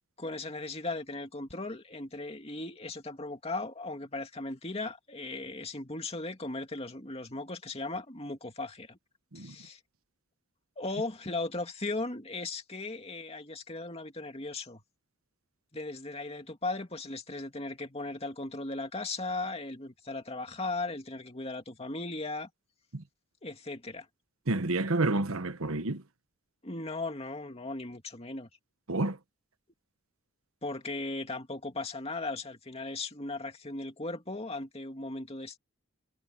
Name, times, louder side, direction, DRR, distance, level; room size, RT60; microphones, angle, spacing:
voice 1, 0.2-9.0 9.3-9.8 10.8-14.8 15.7-22.5 23.4-24.1 26.6-28.5 30.6-35.6, left 2 dB, 30° left, 2.5 m, -37 dB
voice 2, 24.5-26.0 28.9-29.2, right 2 dB, 80° right, 1.3 m, -29 dB
head